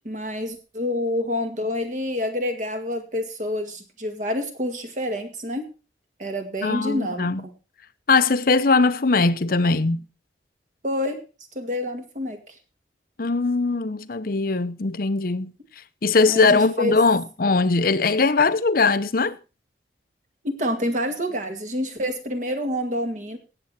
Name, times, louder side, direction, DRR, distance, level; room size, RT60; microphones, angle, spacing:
voice 1, 0.0-5.7 6.2-7.3 10.8-11.2 11.5-12.5 16.3-17.0 20.4-23.4, left 1 dB, 45° right, 2.2 m, -27 dB
voice 2, 6.6-7.4 8.1-10.0 13.2-15.5 16.0-19.4, left 3 dB, 55° left, 0.7 m, -20 dB
18.0 x 7.8 x 4.2 m
head